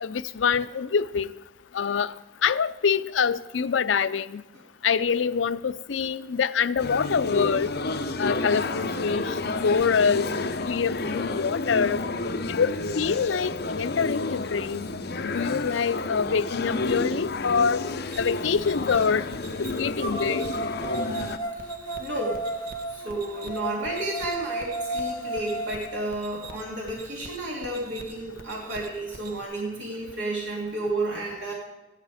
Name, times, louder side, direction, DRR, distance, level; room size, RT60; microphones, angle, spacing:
voice 1, 0.0-1.3 1.7-2.1 2.4-4.4 4.8-7.7 8.2-9.4 9.6-10.3 10.7-12.0 12.5-14.9 15.2-17.8 18.2-19.2 19.6-20.5, left 6 dB, 85° left, 14 dB, 0.5 m, -25 dB
sound 1, 6.8-21.4, left 2 dB, 60° left, 0.9 m, -30 dB
sound 2, 16.9-18.8 20.0-26.0, right 1 dB, 25° left, 1.5 m, -34 dB
sound 3, 18.1-29.4, right 3 dB, 55° right, 1.2 m, -46 dB
voice 2, 22.0-22.4 22.9-31.5, right 2 dB, 75° right, -3 dB, 2.7 m, -31 dB
14.5 x 11.5 x 4.9 m, 1.1 s
head